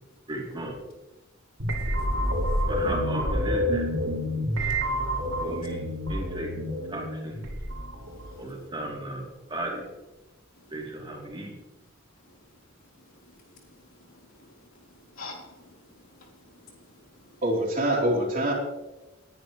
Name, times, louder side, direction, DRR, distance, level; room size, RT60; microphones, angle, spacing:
voice 1, 0.3-0.8 2.7-3.9 5.4-6.5 6.9-7.5 8.4-9.9 10.7-11.5, right 1 dB, 25° right, -1 dB, 3.0 m, -35 dB
sound 1, 1.6-8.5, equal, 90° right, 3.7 m, -28 dB
voice 2, 2.1-2.6 4.5-5.2 8.1-8.4 10.6-10.7 13.2-13.8 14.1-14.5 15.1-16.8 17.2-17.3, left 3 dB, 75° left, -3 dB, 3.4 m, -49 dB
voice 3, 17.4-18.5, right 1 dB, 45° right, -2 dB, 3.5 m, -24 dB
19.5 x 10.5 x 3.2 m, 1.1 s
head